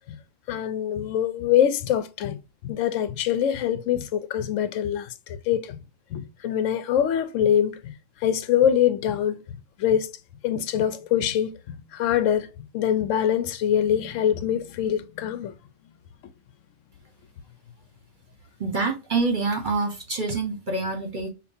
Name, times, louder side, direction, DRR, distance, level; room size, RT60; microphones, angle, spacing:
voice 1, 0.5-2.4 2.6-5.8 6.1-7.9 8.2-9.4 9.8-10.1 10.4-11.5 11.9-12.5 12.7-15.5, left 9 dB, 80° left, 0.9 m, -24 dB
voice 2, 18.6-21.3, right 3 dB, 45° right, 1.0 m, -26 dB
5.2 x 2.4 x 2.6 m
omnidirectional pair, 1.3 m